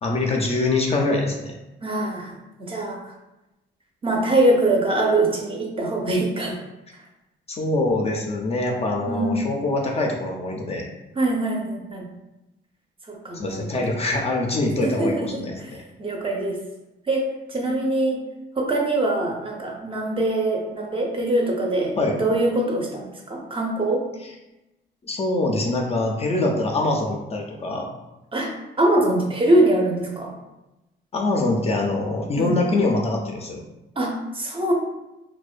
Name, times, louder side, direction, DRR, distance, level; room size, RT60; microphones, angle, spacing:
voice 1, 0.0-1.5 7.5-10.9 13.3-15.8 22.0-22.2 24.2-24.3 25.0-27.9 31.1-33.6, left 2 dB, 30° left, 0 dB, 0.3 m, -24 dB
voice 2, 1.8-2.3 2.6-3.0 4.0-6.6 9.1-9.5 11.2-12.1 13.1-14.0 14.8-15.7 16.0-16.6 17.1-17.2 17.5-18.2 18.6-24.0 28.3-28.5 28.8-30.3 32.4-32.5 34.0-34.7, right 1 dB, 25° right, 0 dB, 0.5 m, -23 dB
2.4 x 2.1 x 2.4 m, 0.98 s
cardioid pair, 90°, 20 cm